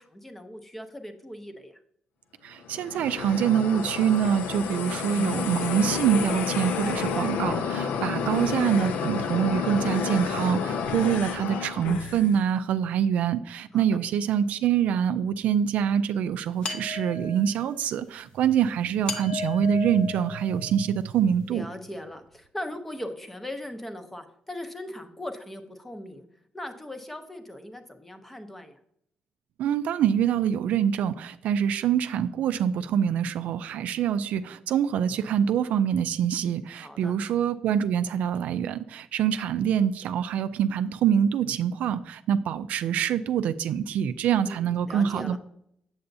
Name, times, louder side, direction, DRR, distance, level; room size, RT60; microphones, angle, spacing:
voice 1, 0.0-1.8 7.9-8.4 13.7-13.8 21.5-26.3 26.5-28.8 36.8-37.2 44.5-45.4, left 1 dB, 10° left, 7 dB, 0.6 m, -39 dB
voice 2, 2.4-21.7 29.6-45.4, right 8 dB, 70° right, 11 dB, 0.3 m, -25 dB
sound 1, 2.6-12.4, left 6 dB, 85° left, 0.5 m, -30 dB
bowl resonance, 16.6-17.7 19.1-20.9, left 5 dB, 40° left, 0.8 m, -35 dB
7.8 x 6.8 x 2.6 m, 0.71 s
cardioid pair, 160°, 3 cm